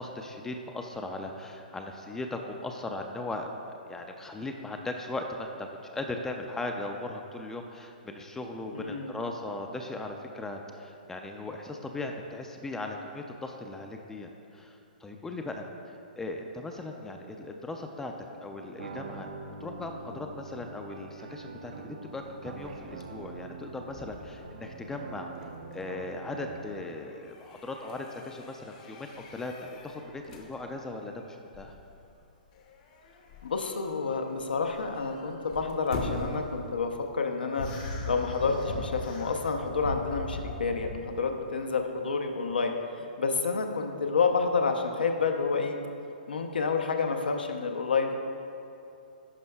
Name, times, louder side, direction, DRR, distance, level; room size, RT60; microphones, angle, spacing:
voice 1, 0.0-3.5 3.9-18.1 18.4-19.3 19.6-25.3 25.7-31.7, left 2 dB, 10° left, 3 dB, 0.3 m, -38 dB
voice 2, 8.7-9.1 33.4-37.7 38.1-45.8 46.3-48.1, left 4 dB, 80° left, 4 dB, 0.6 m, -29 dB
sound 1, 18.8-26.8, right 4 dB, 70° right, 0.6 m, -44 dB
sound 2, 22.2-37.3, left 3 dB, 45° left, 0.8 m, -45 dB
sound 3, 37.5-41.0, left 2 dB, 60° left, 1.2 m, -37 dB
11.0 x 5.4 x 2.3 m, 2.6 s
hypercardioid pair, 130°, 5 cm